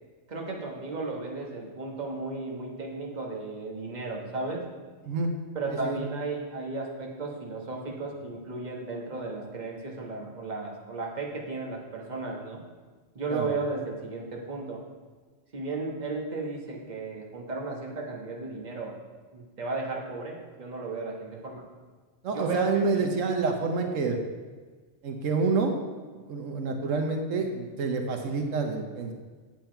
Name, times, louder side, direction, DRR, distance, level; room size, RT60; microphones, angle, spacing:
voice 1, 0.3-4.6 5.5-12.6 13.1-14.8 15.5-19.0 19.3-21.6 22.3-22.7 22.9-23.1, right 3 dB, 35° right, -1 dB, 1.4 m, -34 dB
voice 2, 5.7-6.0 13.3-13.5 22.2-24.2 25.0-25.8 26.3-29.1, right 4 dB, 85° right, 4 dB, 1.3 m, -28 dB
9.1 x 7.3 x 4.5 m, 1.4 s
omnidirectional pair, 1.3 m